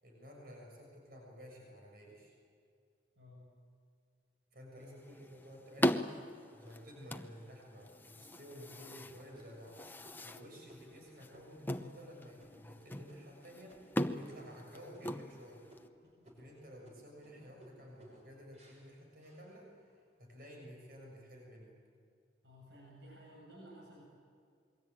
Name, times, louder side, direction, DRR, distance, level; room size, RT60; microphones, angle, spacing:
voice 1, 0.0-2.3 4.5-9.8 10.2-15.6 16.2-19.7 20.2-21.8, equal, 55° right, 0 dB, 6.7 m, -53 dB
voice 2, 3.2-3.5 16.4-16.5 22.4-24.1, equal, 80° right, -2 dB, 7.3 m, -55 dB
sound 1, 4.8-15.9, left 1 dB, 10° left, 0.8 m, -40 dB
sound 2, 6.5-7.4 7.9-8.0 8.5-8.9 9.3-14.6 14.9-15.4 15.7-20.0 20.5-21.0, right 1 dB, 40° right, 5.9 m, -62 dB
27.0 x 22.5 x 9.0 m, 2.3 s
head